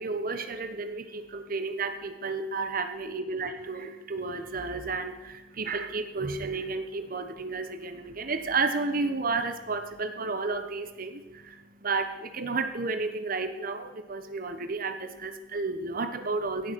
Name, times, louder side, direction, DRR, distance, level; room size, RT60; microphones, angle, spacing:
voice 1, 0.0-16.7, right 3 dB, 50° right, 9 dB, 1.1 m, -32 dB
16.5 x 6.8 x 6.1 m, 1.1 s
head